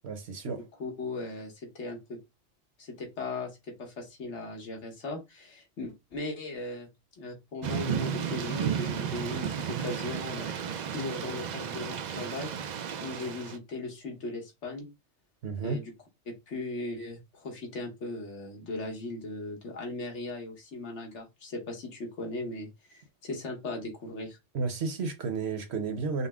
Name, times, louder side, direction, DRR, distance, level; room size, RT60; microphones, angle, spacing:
voice 1, 0.0-0.6 15.4-15.8 24.5-26.3, right 4 dB, 60° right, 1.0 m, -32 dB
voice 2, 0.8-2.2 2.8-6.9 7.2-10.5 10.9-12.5 13.0-14.9 15.6-15.9 16.3-24.4, left 2 dB, 65° left, 1.5 m, -38 dB
Thunder / Rain, 7.6-13.6, right 8 dB, 80° right, 0.4 m, -33 dB
5.3 x 2.1 x 3.5 m
omnidirectional pair, 1.3 m